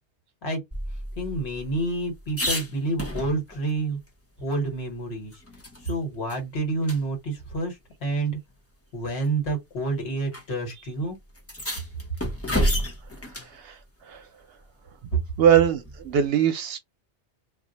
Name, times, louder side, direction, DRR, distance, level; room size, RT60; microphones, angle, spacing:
sound 1, 0.7-3.7 4.1-4.2 4.5-6.0 6.3-6.4 6.8-7.0 8.0-8.1 9.0-9.3 10.3-10.4 10.7-10.8 11.4-13.6 15.8-16.3, equal, 15° left, 0.7 m, -31 dB
voice 1, 1.2-4.0 4.4-5.4 5.8-8.4 8.9-11.2 15.1-15.2, right 2 dB, 65° left, 1.4 m, -28 dB
voice 2, 15.4-16.8, right 9 dB, 65° right, 0.7 m, -21 dB
2.6 x 2.1 x 3.8 m
omnidirectional pair, 1.2 m